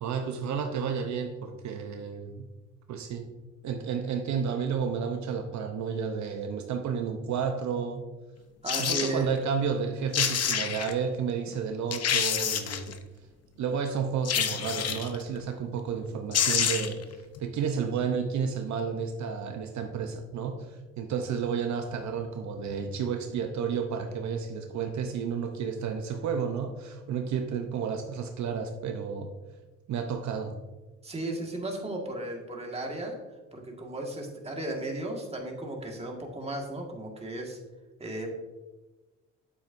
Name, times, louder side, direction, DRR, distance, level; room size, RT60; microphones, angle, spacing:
voice 1, 0.0-2.5 2.9-3.3 3.6-8.0 8.8-13.0 13.6-29.3 29.9-30.6, right 6 dB, 70° right, 5 dB, 0.8 m, -31 dB
sound 1, 8.6-9.1 9.8-9.9 10.1-10.9 11.5-11.6 11.9-12.9 14.2-15.2 16.0-16.1 16.3-17.0 17.4-17.5, left 8 dB, 55° left, 0.8 m, -27 dB
voice 2, 8.6-9.3 31.0-33.2 33.5-37.6 38.0-38.3, right 2 dB, 20° right, 0 dB, 1.7 m, -35 dB
8.6 x 7.5 x 2.6 m, 1.2 s
cardioid pair, 90°, 30 cm